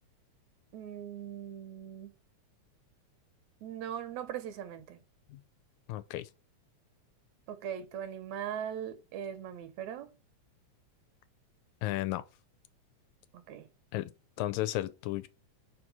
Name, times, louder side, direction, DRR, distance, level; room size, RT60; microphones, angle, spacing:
voice 1, 0.7-2.1 3.6-5.0 7.5-10.1 13.3-13.7, right 9 dB, 75° right, 2.0 m, -40 dB
voice 2, 5.9-6.3 11.8-12.2 13.9-14.1 14.4-15.3, left 16 dB, 80° left, 1.9 m, -33 dB
4.9 x 4.2 x 5.9 m
omnidirectional pair, 3.4 m